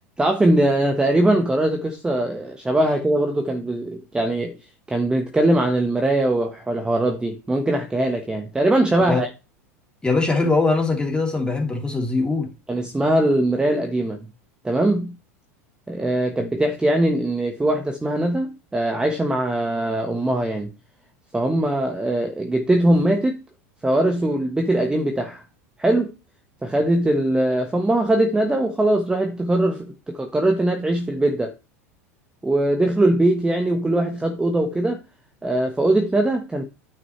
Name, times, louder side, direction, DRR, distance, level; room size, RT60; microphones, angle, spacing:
voice 1, 0.2-4.6 4.9-9.3 12.7-14.2 14.6-15.1 15.9-20.7 21.3-23.4 23.8-25.4 25.8-26.1 26.6-31.5 32.4-35.0 35.4-36.6, right 1 dB, 10° right, 1.2 m, -21 dB
voice 2, 10.0-12.5, left 3 dB, 10° left, 3.2 m, -21 dB
9.5 x 6.1 x 3.2 m
hypercardioid pair, 90°, 8 cm